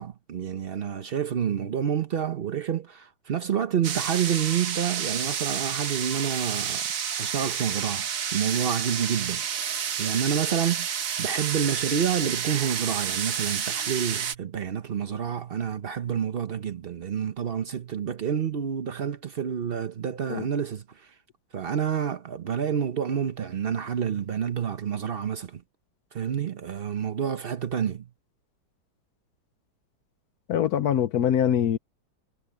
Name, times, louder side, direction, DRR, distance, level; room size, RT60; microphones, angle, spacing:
voice 1, 0.0-6.9 7.2-10.9 11.2-21.1 21.5-25.6 26.1-28.1, right 8 dB, 70° right, 0.5 m, -29 dB
sound 1, 3.8-14.3, right 8 dB, 50° right, 1.2 m, -30 dB
voice 2, 30.5-31.8, left 9 dB, 65° left, 1.0 m, -23 dB
omnidirectional pair, 2.2 m